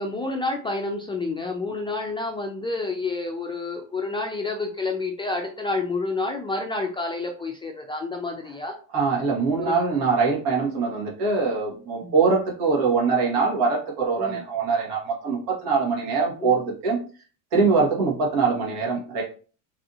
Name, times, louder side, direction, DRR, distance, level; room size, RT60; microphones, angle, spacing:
voice 1, 0.0-8.8 9.6-9.9 12.0-12.1 14.2-14.4 16.4-16.6, left 3 dB, 15° left, 1 dB, 0.4 m, -29 dB
voice 2, 8.9-17.0 17.5-19.2, right 4 dB, 70° right, -2 dB, 1.6 m, -23 dB
3.3 x 2.6 x 2.6 m, 0.38 s
supercardioid pair, 100°, 40 cm